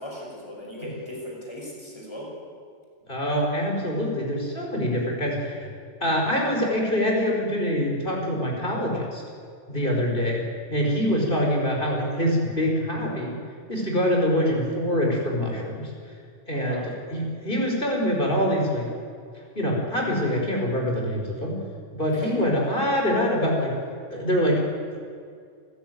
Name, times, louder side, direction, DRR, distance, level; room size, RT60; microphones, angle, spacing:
voice 1, 0.0-2.3 16.5-16.9 22.1-22.4, left 1 dB, 20° left, -2 dB, 5.9 m, -37 dB
voice 2, 3.1-5.7 6.0-9.2 9.7-10.4 10.7-13.4 13.7-15.9 16.5-16.8 17.1-18.9 19.6-21.6 21.9-23.7 24.1-24.6, equal, 45° left, 0 dB, 5.3 m, -24 dB
28.0 x 15.0 x 9.5 m, 2.2 s
omnidirectional pair, 1.3 m